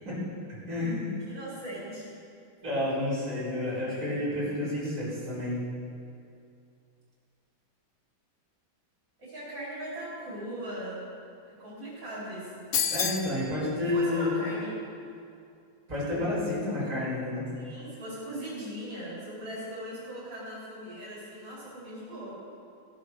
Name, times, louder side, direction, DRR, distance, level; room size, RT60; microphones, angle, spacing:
voice 1, 0.7-1.1 2.6-5.6 12.9-14.3 15.9-17.5, left 1 dB, 45° right, -10 dB, 4.9 m, -30 dB
voice 2, 1.2-2.1 9.2-11.0 11.5-12.6 13.9-14.7 17.6-22.3, right 1 dB, 65° right, -9 dB, 4.6 m, -39 dB
sound 1, 12.7-13.3, left 7 dB, 55° left, 0.9 m, -27 dB
17.0 x 7.8 x 6.6 m, 2.5 s
omnidirectional pair, 2.1 m